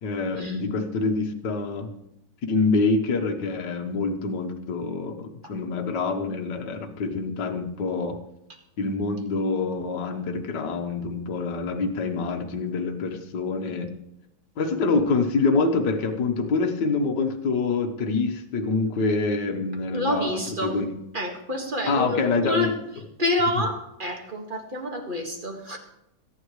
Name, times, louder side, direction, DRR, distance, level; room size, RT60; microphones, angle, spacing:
voice 1, 0.0-1.9 2.5-8.2 8.8-13.9 14.6-20.9 21.9-22.8, left 3 dB, 60° left, 3 dB, 1.8 m, -26 dB
voice 2, 19.9-20.8 21.1-22.8 23.2-25.8, left 1 dB, 25° right, 1 dB, 1.9 m, -28 dB
22.5 x 10.5 x 3.2 m, 0.82 s
omnidirectional pair, 2.2 m